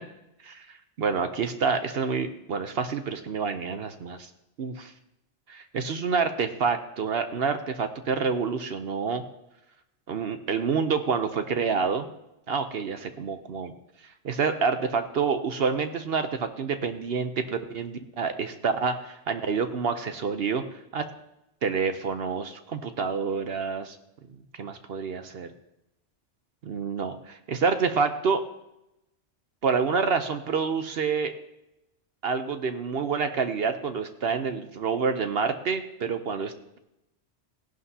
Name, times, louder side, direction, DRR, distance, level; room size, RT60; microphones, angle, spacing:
voice 1, 1.0-4.3 4.6-4.9 5.5-9.2 10.1-12.1 12.5-13.7 14.2-17.4 17.7-20.6 20.9-21.0 21.6-24.0 24.6-25.5 26.6-28.4 29.6-31.3 32.2-36.8, right 5 dB, 60° right, 8 dB, 0.9 m, -28 dB
16.0 x 11.0 x 2.8 m, 0.88 s
omnidirectional pair, 1.2 m